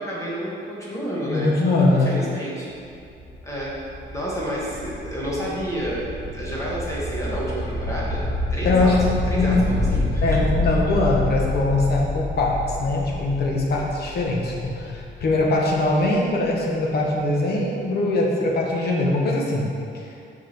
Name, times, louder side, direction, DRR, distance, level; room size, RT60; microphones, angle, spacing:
voice 1, 0.0-1.5 2.0-2.7 3.4-3.7 4.1-6.0 6.3-8.2 8.5-8.9 9.3-10.4, equal, 15° left, -7 dB, 1.2 m, -30 dB
voice 2, 1.3-2.2 8.6-9.7 10.2-19.7, left 2 dB, 55° left, -2 dB, 1.1 m, -22 dB
sound 1, 2.7-16.4, left 2 dB, 35° right, 0.8 m, -28 dB
5.9 x 5.4 x 4.5 m, 2.5 s
wide cardioid pair, 175°, 20 cm